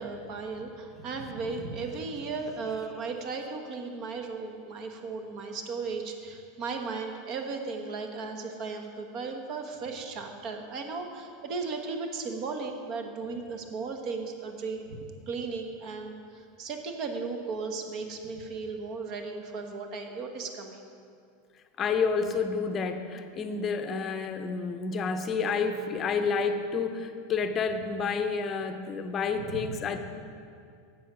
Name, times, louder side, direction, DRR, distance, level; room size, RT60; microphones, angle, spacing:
voice 1, 0.0-20.8 29.4-29.5, right 4 dB, 45° right, 5 dB, 1.2 m, -36 dB
voice 2, 21.8-30.0, left 5 dB, 25° left, 7 dB, 0.7 m, -29 dB
10.0 x 8.0 x 6.1 m, 2.4 s
supercardioid pair, 145°, 0 cm